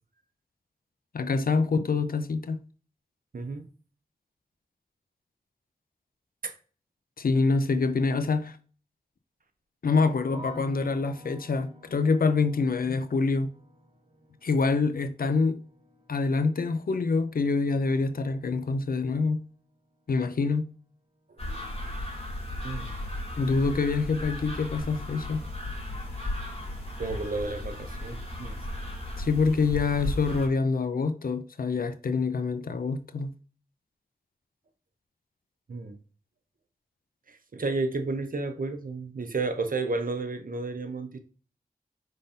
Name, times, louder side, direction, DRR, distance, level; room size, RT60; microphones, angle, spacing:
voice 1, 1.1-2.6 7.2-8.6 9.8-13.5 14.4-15.6 16.1-19.4 20.1-20.7 23.4-25.5 29.2-33.3, left 4 dB, 75° left, 0.6 m, -26 dB
voice 2, 3.3-3.7 6.4-6.5 21.5-21.6 22.6-23.0 27.0-28.6 35.7-36.0 37.3-41.2, right 3 dB, 65° right, 0.8 m, -32 dB
sound 1, 10.3-21.4 21.6-22.4, right 1 dB, 30° right, 1.2 m, -52 dB
sound 2, 21.4-30.5, left 1 dB, 40° left, 2.2 m, -35 dB
5.2 x 3.7 x 2.7 m
cardioid pair, 40°, 15 cm